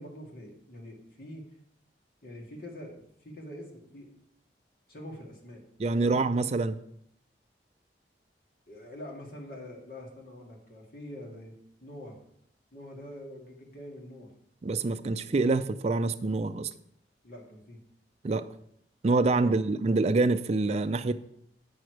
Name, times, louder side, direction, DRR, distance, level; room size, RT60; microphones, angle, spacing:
voice 1, 0.0-1.5 2.2-4.1 4.9-5.6 5.9-6.1 8.7-12.2 12.7-14.3 17.2-17.8 19.3-19.7, left 1 dB, 55° left, -1 dB, 2.0 m, -45 dB
voice 2, 5.8-6.8 14.6-16.7 18.2-18.5 19.0-21.1, right 3 dB, 35° right, 11 dB, 0.4 m, -26 dB
8.8 x 6.5 x 4.6 m, 0.72 s
head